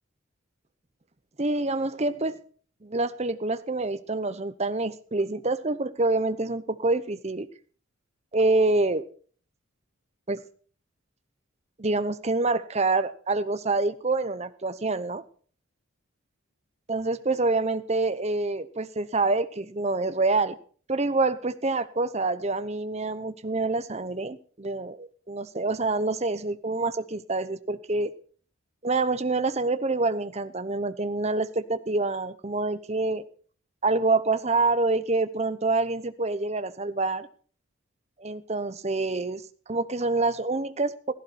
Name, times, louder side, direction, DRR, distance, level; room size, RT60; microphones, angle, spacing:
voice 1, 1.4-2.4 2.8-7.5 8.3-9.0 10.3-10.4 11.8-15.2 16.9-20.6 20.9-28.1 28.8-33.2 33.8-37.3 38.2-39.4 39.7-41.1, right 3 dB, 30° right, 13 dB, 0.8 m, -26 dB
16.0 x 15.0 x 4.2 m, 0.44 s
head